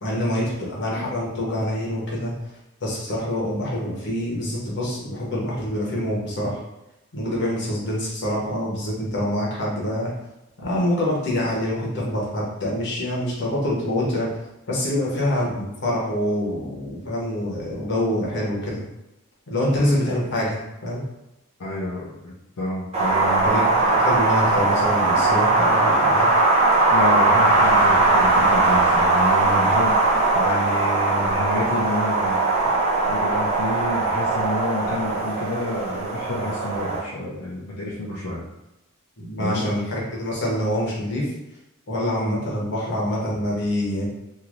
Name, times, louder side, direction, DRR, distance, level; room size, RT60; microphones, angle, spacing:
voice 1, 0.0-2.3 2.8-6.6 7.1-10.1 10.6-14.4 14.7-18.8 19.5-21.0 23.4-26.4 39.2-41.3 41.9-44.1, left 1 dB, 55° left, -5 dB, 1.0 m, -25 dB
voice 2, 21.6-23.5 26.9-32.4 33.1-38.4 39.4-39.7, left 1 dB, 75° left, -7 dB, 0.6 m, -29 dB
Wind, 22.9-37.0, right 2 dB, 30° right, 0.6 m, -20 dB
3.1 x 2.7 x 2.5 m, 0.94 s
head